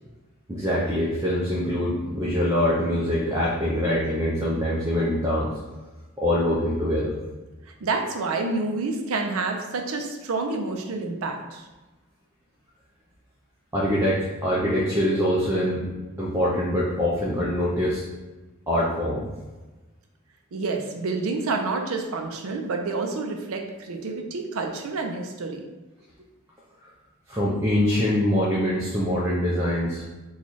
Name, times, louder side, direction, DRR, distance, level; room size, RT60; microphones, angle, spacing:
voice 1, 0.5-5.5 6.2-7.2 13.7-15.9 16.2-18.0 18.7-19.3 27.3-30.0, equal, 15° right, -6 dB, 0.5 m, -24 dB
voice 2, 7.8-11.7 20.5-25.6, right 3 dB, 80° right, 3 dB, 0.5 m, -28 dB
3.0 x 2.3 x 4.0 m, 1.2 s
head